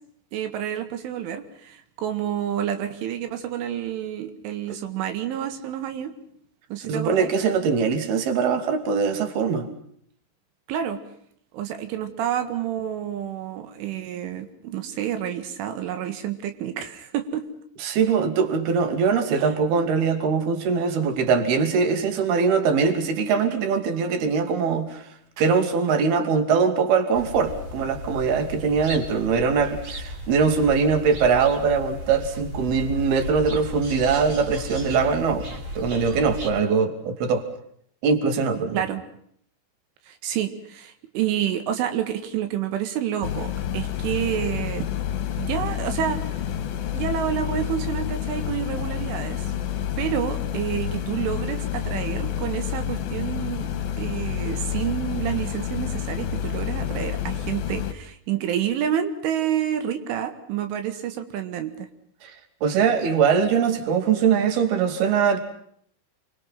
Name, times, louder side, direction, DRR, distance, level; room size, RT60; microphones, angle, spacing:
voice 1, 0.3-6.1 6.7-7.3 10.7-11.0 11.5-17.5 19.4-19.5 38.7-39.0 40.1-44.9 45.4-46.4 46.9-49.4 50.0-53.7 54.0-61.9, right 10 dB, 85° right, 8 dB, 4.4 m, -29 dB
voice 2, 6.9-9.7 17.8-25.1 25.4-35.4 35.8-37.5 38.0-38.8 62.2-62.3 62.6-65.4, right 5 dB, 60° right, 8 dB, 4.4 m, -22 dB
sound 1, 27.1-36.5, left 1 dB, 35° right, 5.2 m, -35 dB
sound 2, 43.2-57.9, left 10 dB, 55° left, 3.1 m, -29 dB
30.0 x 25.0 x 5.8 m, 0.66 s
omnidirectional pair, 5.4 m